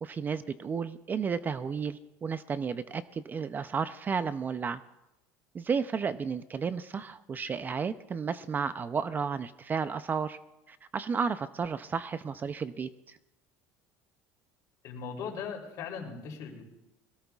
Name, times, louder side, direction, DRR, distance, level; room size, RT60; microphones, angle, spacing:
voice 1, 0.0-4.8 5.5-10.4 10.7-13.2, right 6 dB, 25° right, 13 dB, 0.5 m, -33 dB
voice 2, 14.8-16.6, left 6 dB, 55° left, 2 dB, 3.4 m, -39 dB
22.0 x 17.0 x 2.4 m, 0.97 s
supercardioid pair, 120°, 7 cm